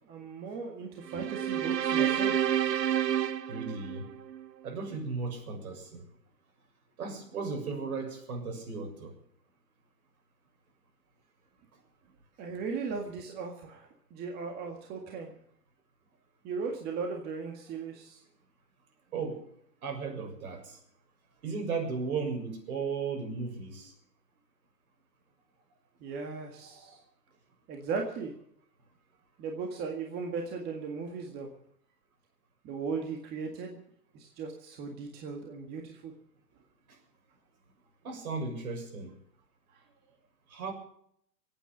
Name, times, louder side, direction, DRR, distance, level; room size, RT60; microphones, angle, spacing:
voice 1, 0.1-2.3 12.4-15.3 16.4-18.2 26.0-27.0 27.7-28.3 29.4-31.5 32.6-33.8 34.1-36.1 39.7-39.8, right 5 dB, 20° right, 2 dB, 1.8 m, -37 dB
sound 1, 1.1-4.5, right 10 dB, 85° right, 1.1 m, -29 dB
voice 2, 3.5-4.1 4.6-6.0 7.0-9.1 19.1-19.4 19.8-20.8 21.4-23.9 38.0-39.1 40.5-40.7, right 4 dB, 60° right, 3 dB, 6.8 m, -35 dB
23.5 x 9.1 x 6.8 m, 0.69 s
hypercardioid pair, 145°, 48 cm